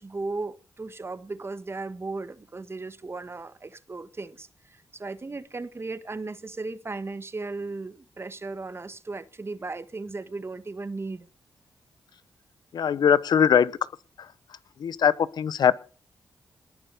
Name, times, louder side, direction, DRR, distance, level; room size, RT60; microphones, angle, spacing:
voice 1, 0.0-11.3, right 3 dB, 35° right, 1.4 m, -36 dB
voice 2, 12.7-13.8 14.2-14.3 14.8-15.8, left 8 dB, 75° left, 0.9 m, -21 dB
19.5 x 6.9 x 7.8 m
cardioid pair, 55°, 7 cm